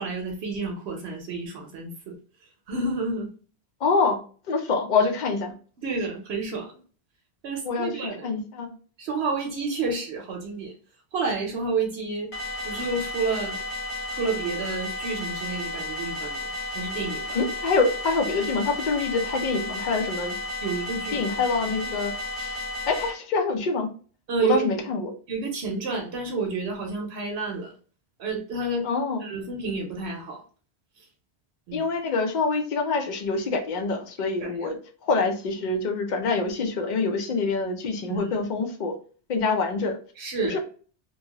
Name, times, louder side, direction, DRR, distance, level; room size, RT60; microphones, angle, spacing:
voice 1, 0.0-2.2 2.7-3.3 5.8-6.7 7.4-8.3 9.0-10.7 11.1-12.3 12.6-13.6 14.1-16.5 16.7-17.4 20.6-21.2 24.3-24.7 25.3-27.7 28.2-28.9 29.2-30.4 31.7-31.8 34.4-34.7 38.1-38.3 40.2-40.6, right 4 dB, 75° right, 0.9 m, -29 dB
voice 2, 3.8-4.2 4.5-5.5 7.6-8.8 17.3-20.4 21.1-22.1 22.4-23.9 24.4-25.1 28.8-29.3 31.7-38.9 39.3-40.0 40.4-40.6, left 4 dB, 55° left, 0.6 m, -26 dB
sound 1, 12.3-23.1, left 2 dB, 90° left, 1.2 m, -33 dB
2.7 x 2.2 x 2.8 m
omnidirectional pair, 1.1 m